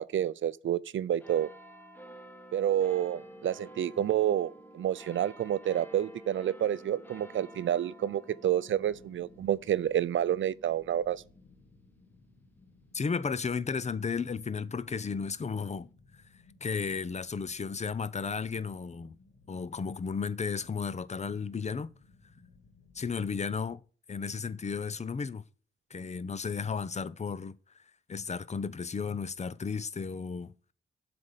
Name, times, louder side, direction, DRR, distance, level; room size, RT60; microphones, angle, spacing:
voice 1, 0.0-1.5 2.5-11.2, right 10 dB, 85° right, 0.5 m, -29 dB
sound 1, 1.2-14.1 14.7-14.8, right 1 dB, 10° left, 1.4 m, -51 dB
sound 2, 8.7-23.8, left 3 dB, 70° left, 2.1 m, -61 dB
voice 2, 12.9-15.9 16.6-19.2 19.5-21.9 22.9-23.8 24.1-25.4 25.9-27.6 28.1-30.5, left 5 dB, 35° left, 0.6 m, -34 dB
7.7 x 5.2 x 7.2 m
wide cardioid pair, 130°, 19 cm